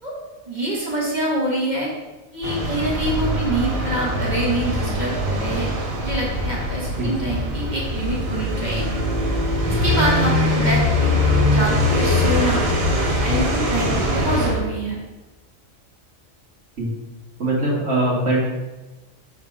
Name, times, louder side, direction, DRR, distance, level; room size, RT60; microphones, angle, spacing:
voice 1, 0.5-1.9 2.3-5.7 6.0-8.8 9.7-11.1 11.5-12.6 13.2-15.0, right 1 dB, 35° right, -5 dB, 1.6 m, -25 dB
sound 1, 2.4-14.5, left 1 dB, 80° right, 1.9 m, -22 dB
voice 2, 17.4-18.4, right 2 dB, 60° right, -4 dB, 1.9 m, -21 dB
4.9 x 3.9 x 5.6 m, 1.1 s
omnidirectional pair, 1.4 m